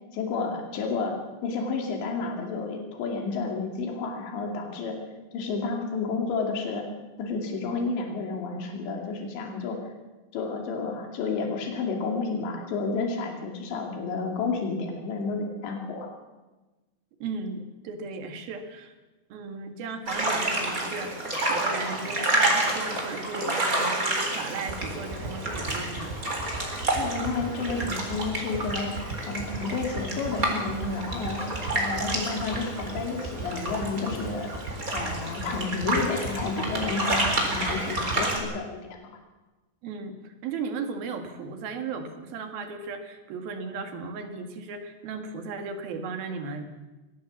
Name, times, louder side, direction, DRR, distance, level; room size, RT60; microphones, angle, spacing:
voice 1, 0.1-1.1 1.4-5.0 5.3-6.9 7.2-9.8 10.3-16.1 26.9-28.9 29.3-31.5 31.7-34.5 34.9-39.1, left 4 dB, 85° left, 2 dB, 4.8 m, -31 dB
voice 2, 17.2-18.9 19.3-26.1 39.8-46.7, right 4 dB, 65° right, 6 dB, 3.6 m, -36 dB
sound 1, 20.1-38.4, right 1 dB, 20° right, 4.0 m, -29 dB
sound 2, 24.7-38.2, right 5 dB, 85° right, 7.9 m, -35 dB
23.0 x 17.5 x 7.3 m, 1.2 s
omnidirectional pair, 5.0 m